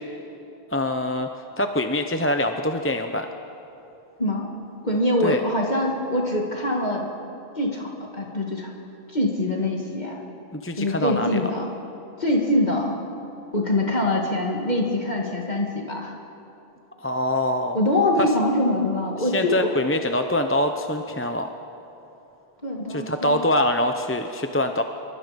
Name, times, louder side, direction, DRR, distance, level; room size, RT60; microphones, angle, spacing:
voice 1, 0.7-1.3 1.6-3.3 5.2-5.4 10.5-11.5 17.0-17.8 18.2-18.3 19.2-21.5 22.9-24.8, left 1 dB, 15° left, 6 dB, 0.8 m, -24 dB
voice 2, 4.2-4.5 4.8-7.0 7.6-8.7 9.1-10.2 10.8-11.7 12.2-13.0 13.5-16.1 17.7-19.7 22.6-23.4, left 1 dB, 45° left, -1 dB, 2.5 m, -24 dB
27.0 x 23.0 x 5.3 m, 3.0 s
omnidirectional pair, 1.0 m